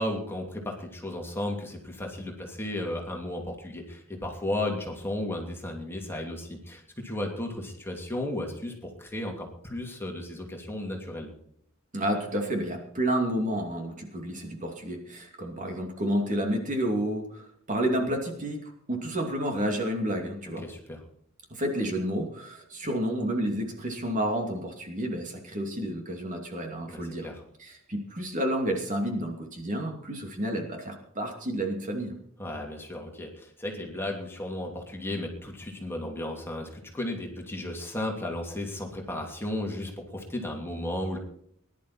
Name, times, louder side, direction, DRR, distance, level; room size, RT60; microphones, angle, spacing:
voice 1, 0.0-11.3 20.6-21.0 26.9-27.4 32.4-41.2, left 1 dB, 10° left, 0 dB, 2.8 m, -34 dB
voice 2, 11.9-20.6 21.5-27.3 27.6-32.2, right 1 dB, 35° right, 2 dB, 2.6 m, -30 dB
20.0 x 11.5 x 4.3 m, 0.66 s
head